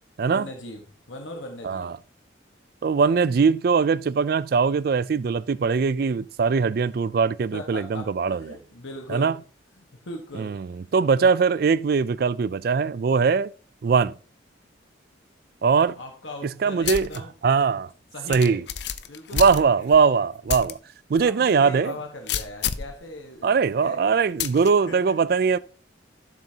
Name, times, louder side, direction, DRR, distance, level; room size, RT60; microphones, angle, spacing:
voice 1, 0.2-2.0 7.5-9.4 9.8-10.6 11.2-11.3 15.9-17.3 18.1-18.6 19.1-19.8 21.2-24.0 24.9-25.2, left 1 dB, 85° left, 1.3 m, -39 dB
voice 2, 2.8-8.4 9.1-9.3 10.4-13.5 13.8-14.1 15.6-16.0 16.6-17.1 17.4-17.9 18.3-18.6 19.3-20.8 21.1-21.9 23.4-25.6, right 5 dB, 50° right, 0.3 m, -21 dB
sound 1, 16.8-17.2 17.6-17.7 18.3-20.0 20.5-20.7 21.2-21.3 22.3-23.0 24.4-24.7, left 8 dB, 60° left, 0.6 m, -29 dB
11.5 x 6.7 x 2.8 m
head